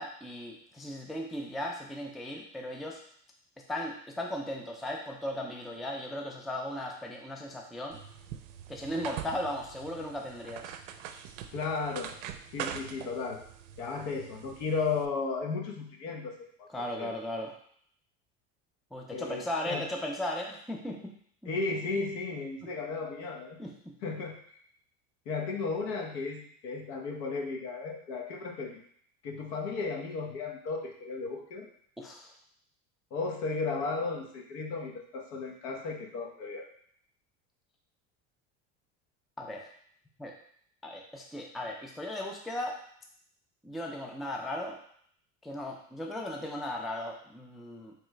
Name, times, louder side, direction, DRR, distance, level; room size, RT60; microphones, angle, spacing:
voice 1, 0.0-3.0 3.7-8.0 8.7-10.7 16.7-17.5 18.9-21.1 23.6-23.9 32.0-32.3 39.4-39.7 40.2-40.3 40.8-42.8 43.6-44.8 45.4-47.9, left 1 dB, ahead, 1 dB, 0.3 m, -37 dB
sound 1, 7.9-15.1, right 9 dB, 80° right, 0.5 m, -43 dB
voice 2, 11.5-12.1 12.5-13.4 13.8-17.1 19.1-19.9 21.5-23.6 24.0-24.6 25.3-28.8 29.2-31.7 33.1-36.7, left 4 dB, 75° left, 1 dB, 1.0 m, -35 dB
3.6 x 3.2 x 3.2 m, 0.63 s
supercardioid pair, 100°, 39 cm